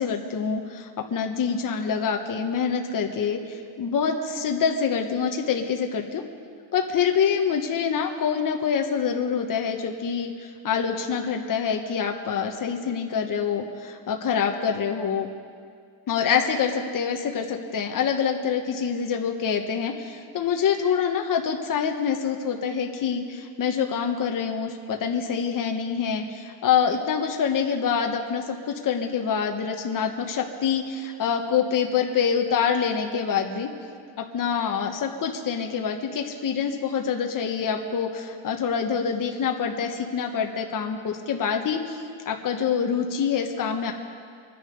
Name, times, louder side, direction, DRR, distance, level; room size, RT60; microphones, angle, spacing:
voice 1, 0.0-3.4 3.8-6.2 6.7-10.3 10.6-15.3 16.1-33.7 34.2-42.0 42.2-43.9, left 7 dB, 45° left, 3 dB, 1.2 m, -26 dB
24.0 x 10.0 x 5.2 m, 2.1 s
cardioid pair, 140°, 47 cm